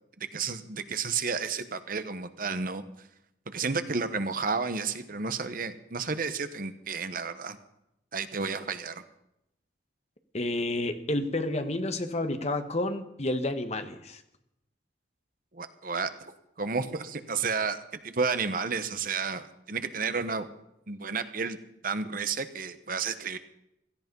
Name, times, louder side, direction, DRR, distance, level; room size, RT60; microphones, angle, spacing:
voice 1, 0.2-2.8 3.5-7.6 8.1-9.0 15.5-16.1 16.6-17.8 18.0-20.5 20.9-21.6 21.8-23.4, right 5 dB, 50° right, 11 dB, 1.1 m, -31 dB
voice 2, 10.3-14.2, left 1 dB, 35° left, 8 dB, 1.3 m, -30 dB
17.0 x 13.5 x 5.4 m, 0.83 s
head